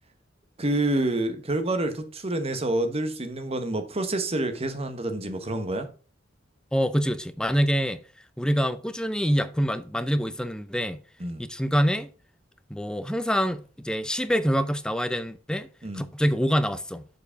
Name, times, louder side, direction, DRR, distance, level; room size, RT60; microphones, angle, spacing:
voice 1, 0.6-5.9 11.2-11.4 15.8-16.1, right 2 dB, 30° right, 1.1 m, -28 dB
voice 2, 6.7-8.0 8.4-11.0 11.4-12.1 12.7-15.7 15.9-17.1, equal, 5° left, 0.5 m, -25 dB
7.1 x 4.9 x 5.0 m
head